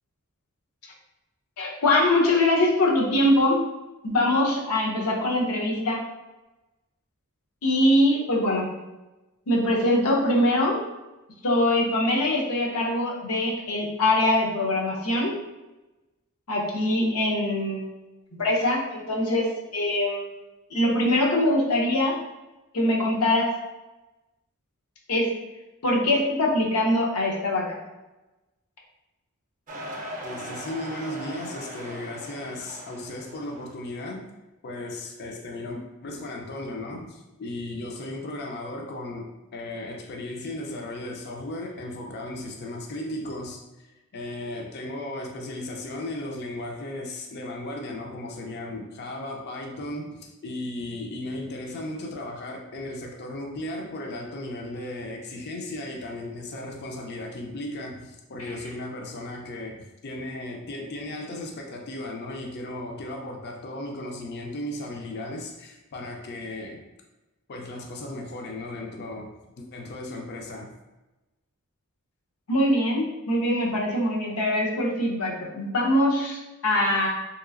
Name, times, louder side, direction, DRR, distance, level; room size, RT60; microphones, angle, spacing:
voice 1, 1.6-3.6 4.0-6.0 7.6-8.7 9.5-10.8 11.4-15.3 16.5-17.8 18.4-20.3 20.7-22.2 22.7-23.5 25.1-25.3 25.8-27.8 72.5-77.1, left 1 dB, 85° left, -2 dB, 0.7 m, -23 dB
sound 1, 29.7-33.8, equal, 35° right, 0.5 m, -39 dB
voice 2, 30.2-34.3 34.6-66.8 67.5-69.3 69.6-70.7, left 1 dB, 50° left, 1 dB, 0.4 m, -36 dB
3.1 x 2.9 x 2.4 m, 1.0 s
head